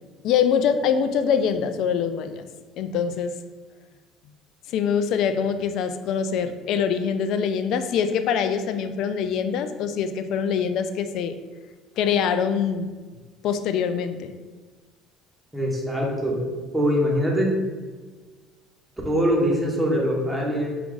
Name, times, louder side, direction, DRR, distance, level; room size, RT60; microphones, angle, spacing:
voice 1, 0.2-2.4 2.8-3.4 4.7-11.4 12.0-12.9 13.4-14.3, left 7 dB, 65° left, 10 dB, 0.3 m, -24 dB
voice 2, 15.5-16.4 16.7-17.5 19.0-20.7, equal, 5° right, -3 dB, 1.1 m, -23 dB
4.5 x 2.5 x 3.8 m, 1.4 s
supercardioid pair, 105°, 0 cm